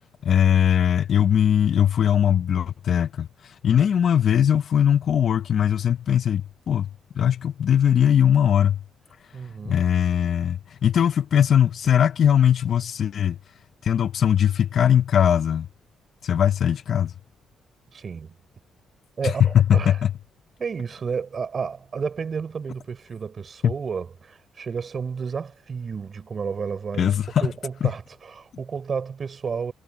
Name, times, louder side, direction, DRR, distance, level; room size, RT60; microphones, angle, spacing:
voice 1, 0.2-6.9 7.1-8.8 9.6-13.4 13.8-15.7 16.2-17.1 19.2-20.1 23.6-23.7 27.0-27.5 27.8-27.9, left 9 dB, 60° left, 0.8 m, -20 dB
voice 2, 9.3-9.8 17.9-18.3 19.2-20.0 20.6-29.7, right 6 dB, 45° right, 4.0 m, -31 dB
cardioid pair, 90°, 0 cm